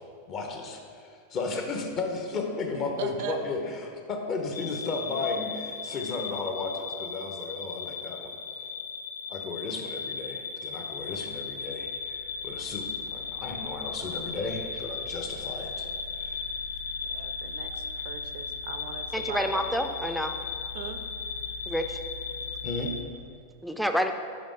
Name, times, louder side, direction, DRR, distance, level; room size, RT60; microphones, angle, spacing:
voice 1, 0.3-8.4 9.3-15.9 16.2-16.5 22.6-22.9, left 3 dB, 35° left, 2 dB, 0.8 m, -34 dB
voice 2, 3.0-3.4 17.1-19.8 20.7-21.0, right 8 dB, 60° right, 8 dB, 0.4 m, -39 dB
sound 1, 4.5-23.0, left 5 dB, 80° left, 0.4 m, -36 dB
voice 3, 19.1-20.3 21.7-22.0 23.6-24.1, equal, ahead, 5 dB, 0.4 m, -28 dB
5.2 x 4.9 x 3.8 m, 2.3 s
figure-of-eight pair, 90°, 0 cm